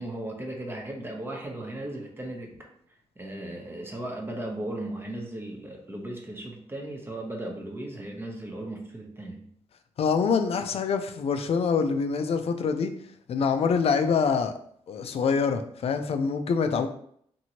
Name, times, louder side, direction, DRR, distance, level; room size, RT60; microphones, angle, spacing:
voice 1, 0.0-2.7 3.2-9.5, right 1 dB, 20° right, 1 dB, 0.7 m, -36 dB
voice 2, 10.0-12.9 13.3-14.5 14.9-16.9, left 5 dB, 60° left, 8 dB, 0.4 m, -25 dB
2.8 x 2.6 x 2.8 m, 0.65 s
cardioid pair, 95°, 12 cm